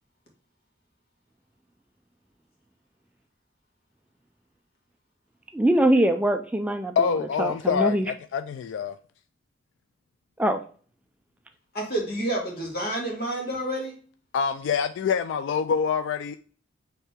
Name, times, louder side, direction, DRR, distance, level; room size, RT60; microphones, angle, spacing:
voice 1, 5.5-8.1 10.4-10.6, right 1 dB, 10° right, 0.3 m, -23 dB
voice 2, 7.0-9.0 14.3-16.4, left 6 dB, 90° left, 0.3 m, -25 dB
voice 3, 11.7-14.0, right 1 dB, 55° left, 1.8 m, -29 dB
4.5 x 3.3 x 3.3 m
head